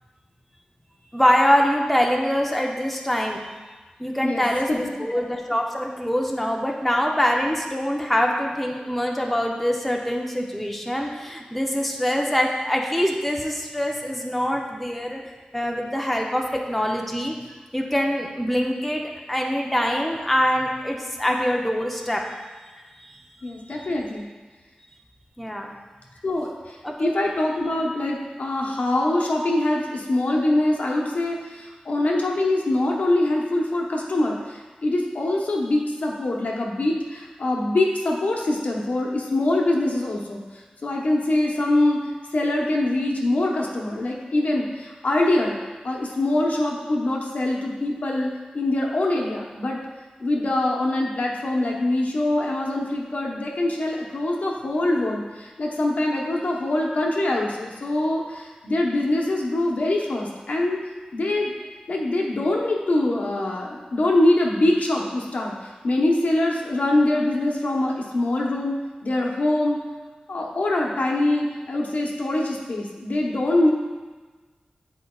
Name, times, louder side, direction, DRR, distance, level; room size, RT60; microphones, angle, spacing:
voice 1, 1.1-3.4 4.0-15.2 15.5-17.3 17.7-22.2 23.6-23.9 25.4-25.7 26.8-27.1, equal, 5° left, 0 dB, 0.6 m, -24 dB
voice 2, 4.2-5.1 23.4-24.3 26.2-40.4 40.8-45.5 45.8-49.8 50.2-60.8 61.1-61.5 61.9-65.5 65.8-69.8 70.3-73.7, left 1 dB, 70° left, -1 dB, 0.9 m, -24 dB
9.9 x 4.6 x 2.4 m, 1.3 s
wide cardioid pair, 90°, 3 cm